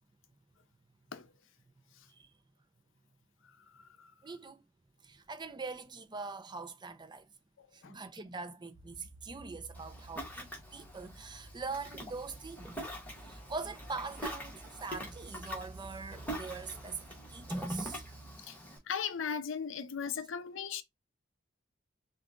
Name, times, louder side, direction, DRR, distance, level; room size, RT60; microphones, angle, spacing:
voice 1, 4.2-4.6 5.0-7.3 7.7-12.8 13.2-18.0, right 4 dB, 20° right, 0.6 m, -43 dB
sound 1, 8.7-18.4, right 2 dB, 25° left, 3.2 m, -53 dB
Ocean, 9.7-18.8, equal, 10° left, 1.8 m, -44 dB
voice 2, 18.9-20.8, left 7 dB, 65° left, 0.6 m, -37 dB
4.7 x 2.6 x 3.8 m
head